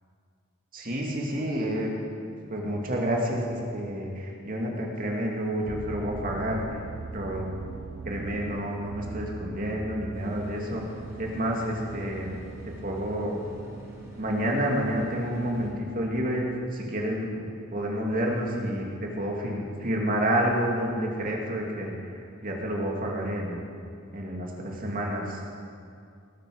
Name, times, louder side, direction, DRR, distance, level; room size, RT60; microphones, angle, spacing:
voice 1, 0.7-6.8 7.1-7.5 8.0-10.8 11.2-12.3 12.8-13.4 14.2-17.4 17.7-21.9 22.4-23.6 24.1-25.4, equal, 40° right, -1 dB, 2.4 m, -29 dB
sound 1, 5.7-17.9 18.5-18.9 19.5-19.6 19.9-20.0, right 3 dB, 65° right, 0.8 m, -42 dB
sound 2, 10.1-15.7, right 1 dB, 15° right, 4.1 m, -45 dB
19.5 x 8.8 x 6.4 m, 2.3 s
head